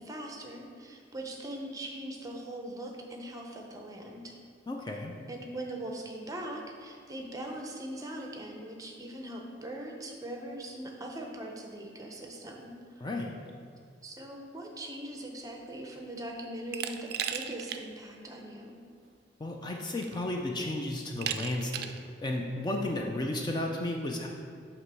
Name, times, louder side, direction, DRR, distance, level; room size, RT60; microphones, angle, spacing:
voice 1, 0.0-4.3 5.3-13.1 14.0-18.8, right 1 dB, 20° right, 1 dB, 0.7 m, -41 dB
voice 2, 4.7-5.1 13.0-13.4 19.4-21.9 22.2-24.3, left 1 dB, 25° left, 1 dB, 0.4 m, -33 dB
Glass, 16.7-17.8 18.2-18.3 19.5-19.6 20.0-20.4 21.2-22.0, right 9 dB, 55° right, 0.3 m, -35 dB
7.7 x 3.0 x 5.5 m, 2.1 s
head